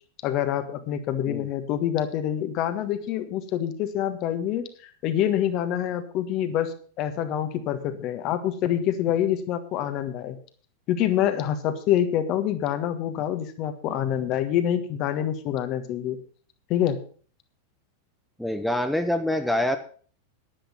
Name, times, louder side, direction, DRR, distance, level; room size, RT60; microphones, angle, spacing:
voice 1, 0.2-10.4 10.9-16.2 16.7-17.0, left 10 dB, 40° left, 9 dB, 1.5 m, -26 dB
voice 2, 18.4-19.8, left 1 dB, ahead, 6 dB, 0.9 m, -25 dB
10.0 x 10.0 x 5.7 m, 0.43 s
figure-of-eight pair, 90°, 0 cm